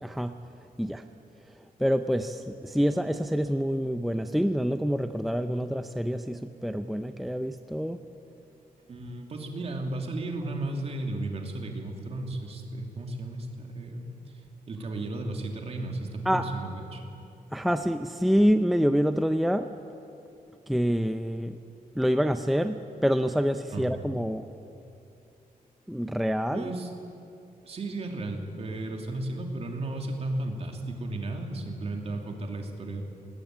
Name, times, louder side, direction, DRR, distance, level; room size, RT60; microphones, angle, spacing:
voice 1, 0.0-0.3 0.8-1.0 1.8-8.0 16.3-16.5 17.5-19.7 20.7-21.6 22.0-22.8 23.0-24.4 25.9-26.7, equal, ahead, 8 dB, 0.5 m, -26 dB
voice 2, 8.9-14.1 14.7-17.0 23.7-23.8 26.5-26.9 27.6-33.0, right 2 dB, 45° right, 3 dB, 2.8 m, -34 dB
21.0 x 19.5 x 9.1 m, 2.7 s
wide cardioid pair, 165°, 15 cm